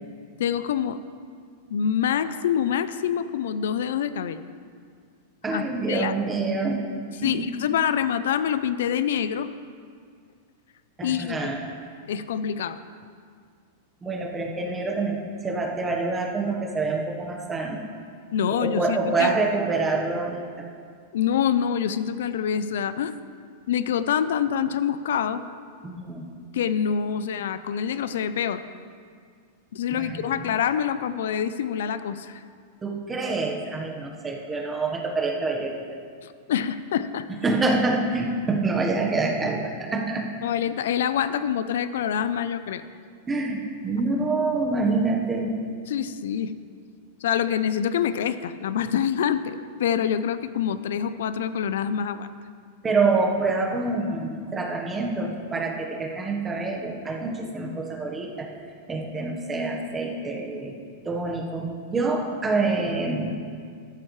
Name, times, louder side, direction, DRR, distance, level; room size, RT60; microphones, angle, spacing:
voice 1, 0.4-1.0 1.7-4.4 5.5-6.1 7.2-9.5 11.0-11.4 12.1-12.8 18.3-19.3 21.1-23.1 23.7-25.4 26.5-28.6 29.7-32.4 36.2-37.3 40.4-42.8 45.9-46.5 47.2-52.3, left 8 dB, 80° left, 13 dB, 0.6 m, -26 dB
voice 2, 5.4-6.8 7.2-7.5 11.0-11.6 14.0-17.8 18.5-20.7 25.8-26.3 29.9-30.4 32.8-35.8 37.4-40.3 41.3-41.4 43.3-45.5 52.8-58.5 58.9-60.7 61.0-63.3, right 3 dB, 15° right, 0 dB, 1.3 m, -26 dB
13.0 x 13.0 x 3.3 m, 2.1 s
supercardioid pair, 155°, 0 cm